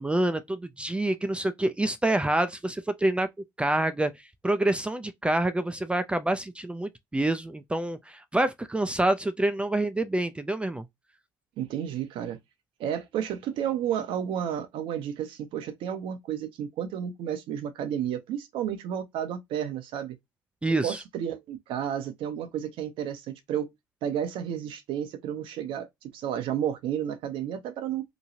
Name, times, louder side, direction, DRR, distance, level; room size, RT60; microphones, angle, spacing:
voice 1, 0.0-3.3 3.6-10.8 20.6-21.0, right 1 dB, 10° right, 0.4 m, -27 dB
voice 2, 11.6-12.4 12.8-20.2 20.8-23.7 24.0-28.0, right 9 dB, 65° right, 0.7 m, -32 dB
3.0 x 2.3 x 2.7 m
hypercardioid pair, 65°, 9 cm